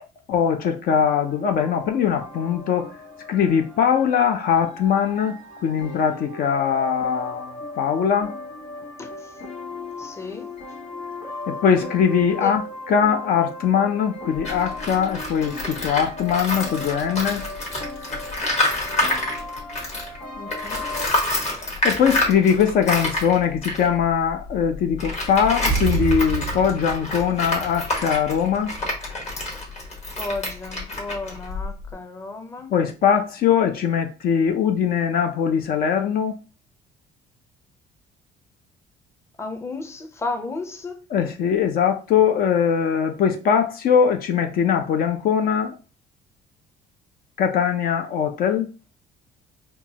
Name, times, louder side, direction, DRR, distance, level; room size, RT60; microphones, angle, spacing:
voice 1, 0.3-2.9 3.3-8.3 11.5-12.6 12.9-17.5 21.8-28.7 32.7-36.4 41.1-45.7 47.4-48.7, left 7 dB, 60° left, 0.5 m, -21 dB
sound 1, 1.2-21.1, left 2 dB, 80° left, 1.5 m, -37 dB
voice 2, 9.0-9.3 10.0-10.5 12.4-12.5 20.4-20.9 30.2-32.7 39.4-41.0, left 3 dB, 15° left, 0.6 m, -33 dB
Tools, 14.3-20.2 20.5-31.9, left 2 dB, 40° left, 1.4 m, -28 dB
sound 2, 25.7-28.9 29.2-29.3, right 8 dB, 75° right, 0.4 m, -29 dB
4.5 x 2.3 x 2.8 m
cardioid pair, 110°, 17 cm